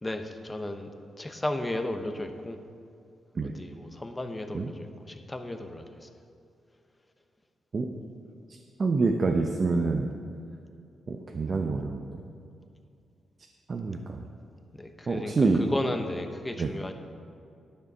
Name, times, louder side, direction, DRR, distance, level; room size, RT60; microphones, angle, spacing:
voice 1, 0.0-0.9 1.2-2.6 3.4-6.1 14.7-16.9, left 1 dB, 15° left, 7 dB, 0.8 m, -34 dB
voice 2, 8.8-10.1 11.1-12.0 13.7-14.2 15.1-15.6 16.6-16.7, right 3 dB, 40° right, 3 dB, 0.7 m, -26 dB
10.5 x 6.8 x 6.0 m, 2.4 s
cardioid pair, 100°, 0 cm